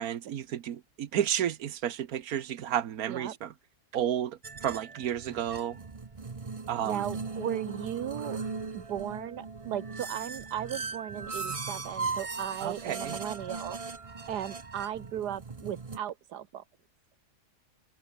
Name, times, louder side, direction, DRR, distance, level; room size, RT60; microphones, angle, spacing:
voice 1, 0.0-3.5 3.9-5.8 6.7-7.0 12.6-13.2, right 10 dB, 70° right, 1.4 m, -32 dB
sound 1, 4.4-16.0, right 4 dB, 25° right, 0.9 m, -39 dB
voice 2, 6.8-8.4 8.7-13.8 14.3-16.6, right 10 dB, 85° right, 1.5 m, -36 dB
omnidirectional pair, 1.7 m